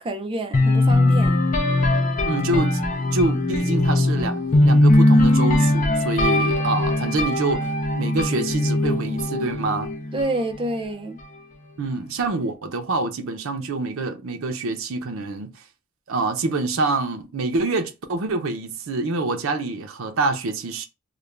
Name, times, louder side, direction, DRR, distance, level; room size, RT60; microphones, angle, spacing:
voice 1, 0.0-1.4 10.1-11.2, right 1 dB, 25° right, 0.4 m, -28 dB
sound 1, 0.5-10.4, left 1 dB, 35° left, 0.5 m, -20 dB
voice 2, 2.2-2.8 3.1-9.9 11.8-15.6 16.1-20.9, right 3 dB, 70° right, 0.6 m, -26 dB
2.4 x 2.1 x 3.1 m
head